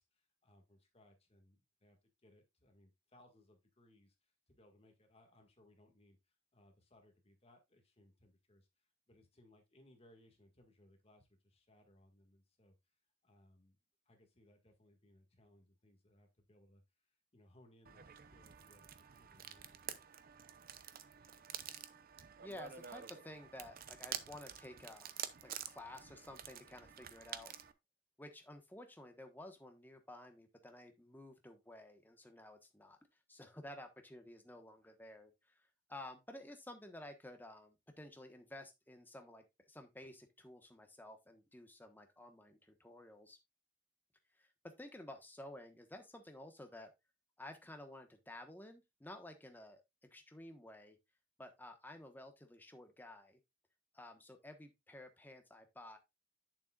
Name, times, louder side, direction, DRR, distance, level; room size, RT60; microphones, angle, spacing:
voice 1, 0.0-13.8 14.1-19.9, left 1 dB, 30° left, 1.8 m, -67 dB
sound 1, 17.9-27.7, right 9 dB, 50° right, 0.6 m, -49 dB
voice 2, 22.4-25.1 25.4-27.5 28.2-33.0 33.3-43.4 44.3-46.9 47.4-51.0 51.4-53.4 53.9-56.0, left 1 dB, 10° left, 1.2 m, -53 dB
8.6 x 7.0 x 2.4 m
head